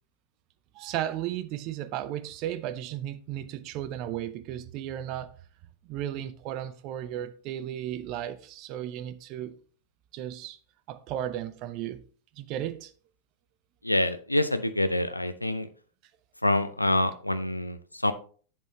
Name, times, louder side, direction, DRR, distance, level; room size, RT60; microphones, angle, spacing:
voice 1, 0.7-5.3 5.8-9.6 10.1-10.6 10.9-12.0 12.4-12.9, right 11 dB, 40° right, 0.6 m, -35 dB
voice 2, 13.8-15.7 16.4-18.1, left 1 dB, 85° left, 0.5 m, -26 dB
7.8 x 7.3 x 3.1 m
figure-of-eight pair, 90°, 0 cm